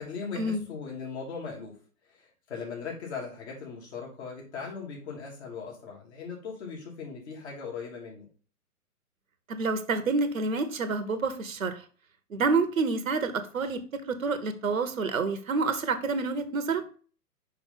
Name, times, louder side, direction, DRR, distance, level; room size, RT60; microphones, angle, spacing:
voice 1, 0.0-1.8 2.1-8.3, left 5 dB, 45° left, -2 dB, 3.1 m, -39 dB
voice 2, 9.5-11.8 12.3-13.8 14.1-16.8, right 4 dB, 60° right, 10 dB, 1.1 m, -28 dB
5.7 x 5.6 x 3.7 m, 0.40 s
figure-of-eight pair, 120°, 46 cm